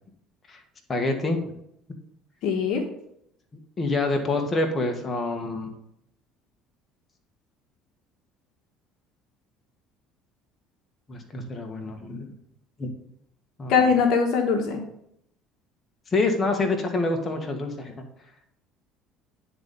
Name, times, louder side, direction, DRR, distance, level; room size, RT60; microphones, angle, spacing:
voice 1, 0.9-1.5 3.8-5.7 11.1-12.3 12.8-12.9 13.6-13.8 16.1-18.0, left 2 dB, 30° left, 3 dB, 1.7 m, -26 dB
voice 2, 2.4-2.8 13.7-14.8, left 5 dB, 70° left, 3 dB, 1.2 m, -21 dB
9.6 x 4.1 x 5.3 m, 0.75 s
supercardioid pair, 85°, 0 cm